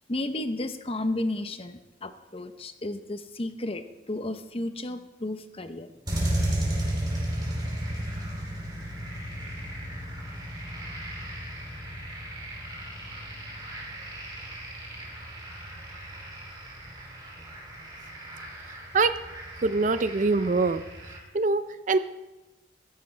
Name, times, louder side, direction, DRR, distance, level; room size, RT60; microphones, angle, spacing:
voice 1, 0.1-5.9, left 1 dB, 30° left, 9 dB, 0.8 m, -33 dB
sound 1, 6.0-21.2, right 1 dB, 20° right, 2.9 m, -34 dB
voice 2, 18.7-19.2 19.6-22.0, right 3 dB, 40° right, 12 dB, 0.5 m, -25 dB
15.5 x 14.0 x 3.3 m, 1.1 s
head